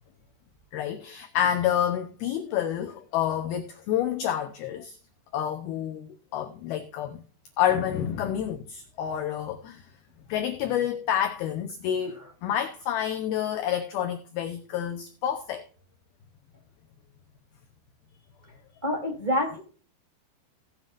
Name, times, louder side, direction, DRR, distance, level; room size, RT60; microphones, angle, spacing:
voice 1, 0.7-5.0 5.3-7.2 7.6-9.8 10.3-15.7, left 10 dB, 85° left, 2.1 m, -28 dB
voice 2, 18.8-19.6, left 1 dB, 10° right, 2.6 m, -27 dB
18.0 x 7.5 x 2.6 m
omnidirectional pair, 5.6 m